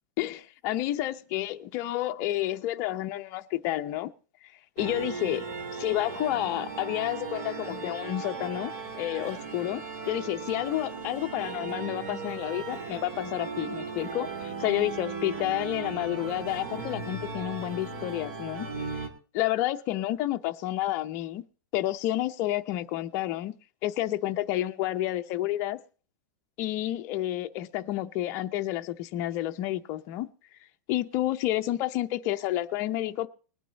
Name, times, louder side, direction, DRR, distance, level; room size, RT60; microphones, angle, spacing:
voice 1, 0.2-4.1 4.8-19.1 19.3-21.4 21.7-23.5 23.8-25.8 26.6-30.3 30.9-33.3, left 14 dB, 25° left, 0.8 m, -30 dB
sound 1, 4.8-19.1, right 4 dB, 45° right, 3.2 m, -37 dB
21.0 x 9.1 x 4.1 m
supercardioid pair, 175°, 9 cm